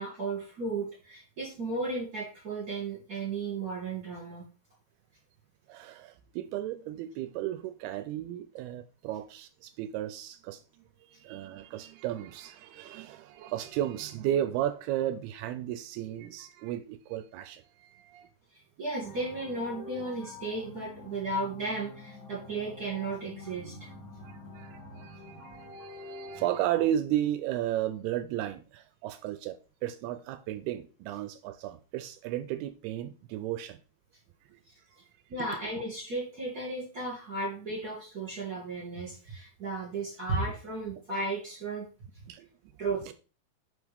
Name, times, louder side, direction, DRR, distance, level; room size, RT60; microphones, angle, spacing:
voice 1, 0.0-4.5 18.5-23.9 35.3-41.9 42.8-43.0, right 3 dB, 30° right, 2.0 m, -34 dB
voice 2, 5.7-10.9 11.2-18.3 24.3-33.8 42.3-42.5 43.0-43.1, right 12 dB, 80° right, 2.4 m, -34 dB
sound 1, 19.0-26.9, left 2 dB, 40° left, 1.3 m, -47 dB
9.9 x 5.0 x 3.5 m
omnidirectional pair, 4.8 m